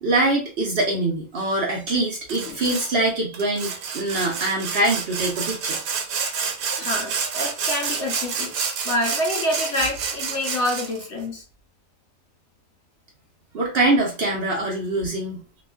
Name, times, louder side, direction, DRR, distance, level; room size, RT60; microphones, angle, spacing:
voice 1, 0.0-5.8 13.5-15.4, right 2 dB, 65° right, 0.6 m, -23 dB
Sawing, 2.3-2.9 3.3-11.1, right 6 dB, 80° right, 1.2 m, -29 dB
voice 2, 6.8-8.5 8.8-11.4, left 1 dB, 55° left, 0.8 m, -27 dB
2.8 x 2.4 x 2.3 m
omnidirectional pair, 1.8 m